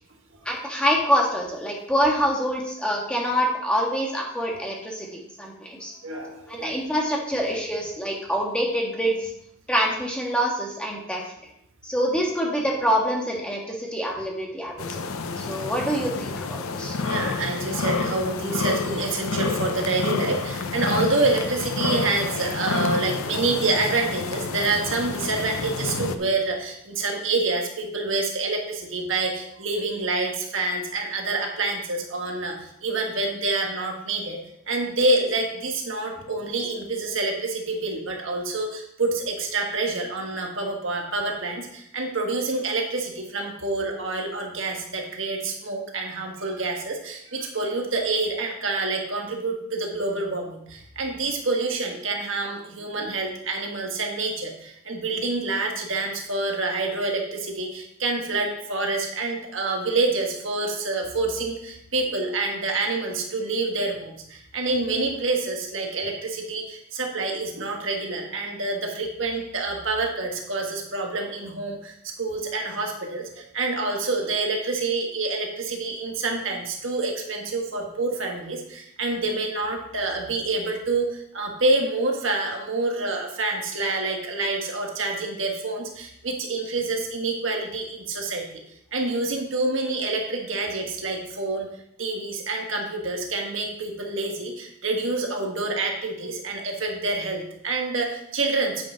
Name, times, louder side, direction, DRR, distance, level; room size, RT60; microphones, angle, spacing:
voice 1, 0.4-5.9 6.5-9.3 9.7-11.2 11.8-15.0 15.5-17.0, equal, 5° left, -2 dB, 1.6 m, -25 dB
voice 2, 6.0-6.8 16.8-34.4 34.7-88.4 88.9-91.7 92.0-98.9, right 3 dB, 60° right, 1 dB, 1.6 m, -27 dB
sound 1, 14.8-26.1, left 4 dB, 80° left, 0.7 m, -29 dB
9.2 x 5.6 x 5.0 m, 0.74 s
head